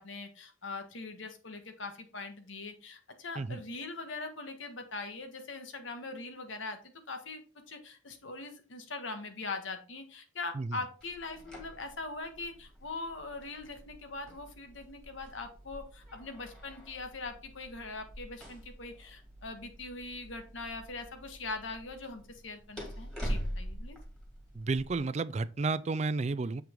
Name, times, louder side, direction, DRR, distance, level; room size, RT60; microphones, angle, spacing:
voice 1, 0.0-6.8 7.1-7.4 7.7-24.0, left 3 dB, 85° left, 1.5 m, -41 dB
sound 1, 11.0-25.0, equal, 5° left, 2.3 m, -44 dB
voice 2, 24.5-26.6, right 3 dB, 35° right, 0.4 m, -32 dB
7.1 x 5.8 x 3.8 m
head